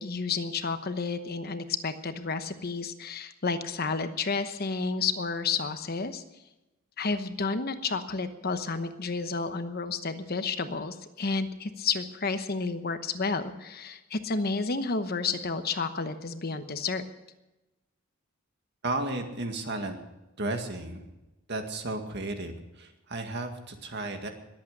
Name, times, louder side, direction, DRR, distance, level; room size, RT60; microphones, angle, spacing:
voice 1, 0.0-6.2 7.0-17.0, left 4 dB, 45° left, 9 dB, 1.0 m, -31 dB
voice 2, 18.8-20.0 20.4-21.1 21.5-24.3, right 2 dB, 50° right, 5 dB, 2.0 m, -34 dB
21.5 x 8.6 x 6.7 m, 1.0 s
head